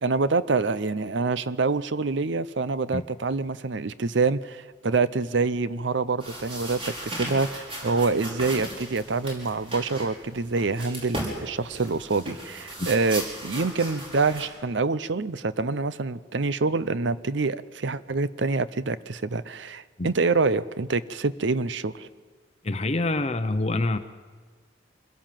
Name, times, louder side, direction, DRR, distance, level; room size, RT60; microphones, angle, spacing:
voice 1, 0.0-22.1, right 3 dB, 70° right, 16 dB, 0.7 m, -26 dB
sound 1, 6.2-14.5, right 1 dB, 30° right, 4.9 m, -37 dB
voice 2, 22.6-24.0, left 2 dB, 35° left, 9 dB, 0.7 m, -26 dB
25.0 x 16.5 x 7.6 m, 1.5 s
head